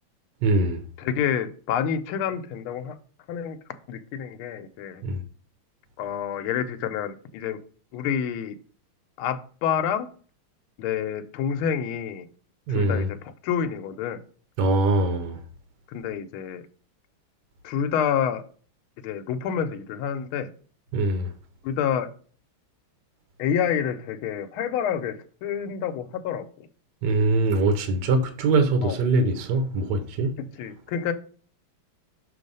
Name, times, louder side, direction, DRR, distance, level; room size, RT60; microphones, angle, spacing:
voice 1, 0.4-0.8 5.0-5.2 12.7-13.1 14.6-15.4 20.9-21.3 27.0-30.3, right 2 dB, 65° right, 1.3 m, -22 dB
voice 2, 1.0-2.9 3.3-3.6 3.9-5.0 6.0-7.6 7.9-8.5 9.2-10.1 10.8-12.2 12.7-13.2 13.4-14.2 15.9-16.6 17.6-18.4 19.0-20.5 21.6-22.1 23.4-25.2 25.4-26.5 28.8-29.0 30.6-31.1, left 8 dB, 80° left, 1.5 m, -28 dB
6.3 x 3.5 x 5.3 m
omnidirectional pair, 2.3 m